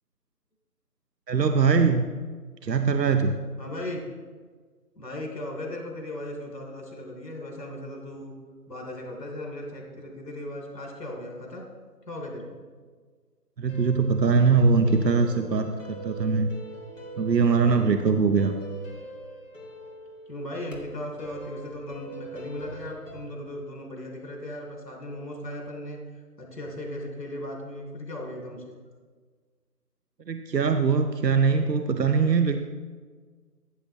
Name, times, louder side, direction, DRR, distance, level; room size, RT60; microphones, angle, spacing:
voice 1, 1.3-2.0 2.6-3.4 13.6-16.5 17.2-18.5 30.3-32.6, right 5 dB, 85° right, 7 dB, 0.8 m, -22 dB
voice 2, 3.6-4.0 5.0-8.3 8.7-11.6 12.1-12.6 20.3-26.0 26.4-28.8, left 1 dB, 80° left, 0 dB, 3.1 m, -37 dB
sound 1, 13.7-23.3, right 3 dB, 50° left, 1.8 m, -42 dB
14.0 x 7.3 x 3.0 m, 1.5 s
figure-of-eight pair, 175°, 48 cm